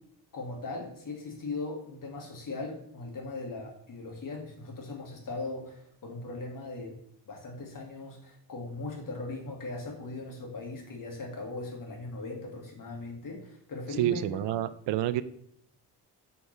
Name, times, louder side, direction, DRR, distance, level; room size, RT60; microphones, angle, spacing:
voice 1, 0.3-6.9 7.3-14.6, left 3 dB, 50° left, 0 dB, 2.3 m, -39 dB
voice 2, 14.0-15.2, right 13 dB, 85° right, 15 dB, 0.5 m, -28 dB
6.8 x 6.4 x 3.3 m, 0.74 s
cardioid pair, 85°, 41 cm